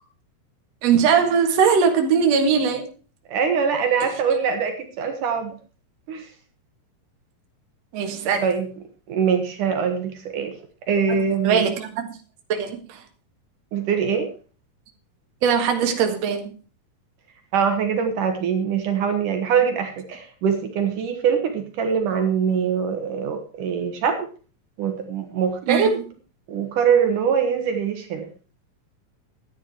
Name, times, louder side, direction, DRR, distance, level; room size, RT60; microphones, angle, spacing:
voice 1, 0.8-2.9 7.9-8.4 11.4-12.1 12.5-13.0 15.4-16.5 25.7-25.9, right 6 dB, 55° right, 4 dB, 2.7 m, -20 dB
voice 2, 3.3-5.5 6.1-6.3 8.4-8.7 9.1-10.5 10.9-11.7 13.7-14.3 17.5-24.3 24.8-26.0 26.5-28.3, right 6 dB, 70° right, 5 dB, 3.0 m, -23 dB
12.0 x 10.5 x 4.7 m, 0.37 s
omnidirectional pair, 3.9 m